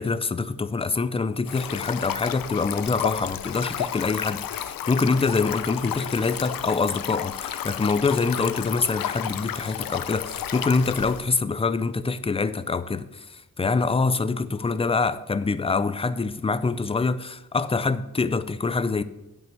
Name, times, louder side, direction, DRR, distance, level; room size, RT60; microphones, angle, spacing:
voice 1, 0.0-19.0, left 4 dB, 15° left, 0.4 m, -25 dB
Stream, 1.5-11.3, left 10 dB, 70° left, 0.6 m, -32 dB
9.2 x 5.4 x 7.0 m
wide cardioid pair, 115°, 36 cm